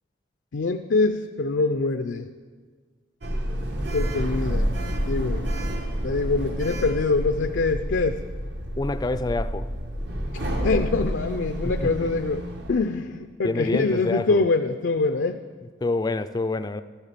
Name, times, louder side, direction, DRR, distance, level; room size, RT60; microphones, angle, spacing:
voice 1, 0.5-2.3 3.9-4.7 5.1-5.5 6.0-8.2 10.3-12.4 12.7-15.4, left 3 dB, 80° left, 7 dB, 0.5 m, -24 dB
Sliding door, 3.2-12.8, equal, 65° right, 1.3 m, -29 dB
voice 2, 8.8-9.7 11.8-12.1 13.4-14.4 15.8-16.8, left 2 dB, 20° left, 12 dB, 0.4 m, -27 dB
13.0 x 7.1 x 6.7 m, 1.5 s
head